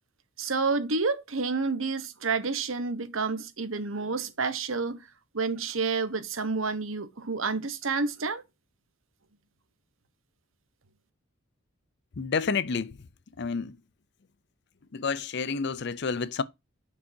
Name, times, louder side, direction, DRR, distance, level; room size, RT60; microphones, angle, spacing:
voice 1, 0.4-5.0 5.3-8.4, right 4 dB, 80° right, 1.2 m, -29 dB
voice 2, 12.2-13.0 13.4-13.8 14.9-16.4, left 5 dB, 55° left, 0.5 m, -29 dB
7.3 x 6.8 x 2.8 m
head